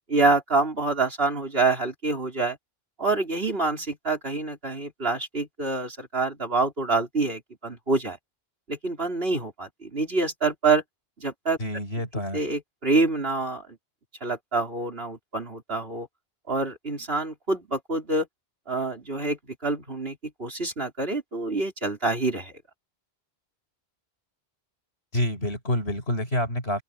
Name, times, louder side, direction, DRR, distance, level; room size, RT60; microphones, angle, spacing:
voice 1, 0.1-2.6 3.0-8.2 8.7-10.8 11.2-11.6 12.3-13.6 14.2-16.1 16.5-18.3 18.7-22.5, right 3 dB, 65° right, 5.0 m, -26 dB
voice 2, 11.6-12.4 25.1-26.8, left 1 dB, 70° left, 6.3 m, -27 dB
open air
omnidirectional pair, 1.1 m